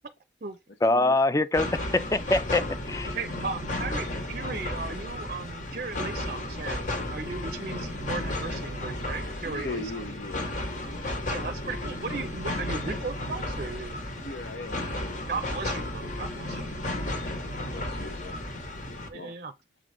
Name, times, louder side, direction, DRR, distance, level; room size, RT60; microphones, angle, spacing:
voice 1, 0.8-3.1, left 2 dB, 15° left, 0.4 m, -24 dB
sound 1, 1.5-19.1, left 1 dB, 45° left, 1.2 m, -33 dB
voice 2, 3.1-10.1 11.3-14.0 15.3-16.7 19.0-19.5, right 4 dB, 45° right, 0.5 m, -36 dB
voice 3, 9.4-11.1 14.2-15.3 17.3-18.5 19.1-19.3, left 2 dB, 75° left, 1.0 m, -40 dB
7.5 x 3.8 x 3.4 m
head